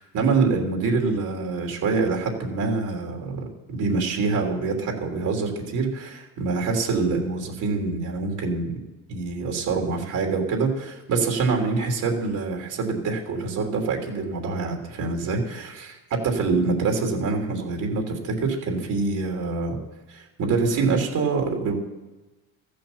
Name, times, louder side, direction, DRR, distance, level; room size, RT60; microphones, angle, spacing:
voice 1, 0.0-3.4 3.7-8.8 9.1-19.8 20.1-21.8, right 4 dB, 55° right, 2 dB, 3.4 m, -25 dB
14.5 x 8.6 x 7.2 m, 1.1 s
cardioid pair, 110°, 36 cm